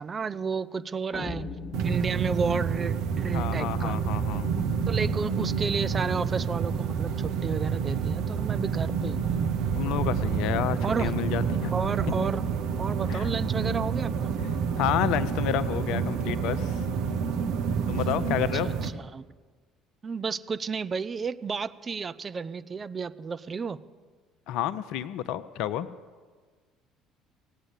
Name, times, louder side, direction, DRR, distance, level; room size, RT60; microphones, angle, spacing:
voice 1, 0.0-1.5 1.8-4.0 4.9-9.3 10.8-11.1 11.7-12.5 12.8-14.3 18.6-19.3 20.0-23.8, right 5 dB, 30° right, 12 dB, 0.6 m, -32 dB
sound 1, 1.1-4.2, left 3 dB, 30° left, 0.9 m, -41 dB
sound 2, 1.7-18.9, right 6 dB, 60° right, 0.8 m, -28 dB
voice 2, 3.3-4.5 9.8-11.7 13.1-13.3 14.8-16.8 17.9-18.7 24.5-25.9, left 11 dB, 60° left, 14 dB, 0.5 m, -30 dB
17.0 x 8.9 x 8.2 m, 1.5 s
figure-of-eight pair, 55°, 0 cm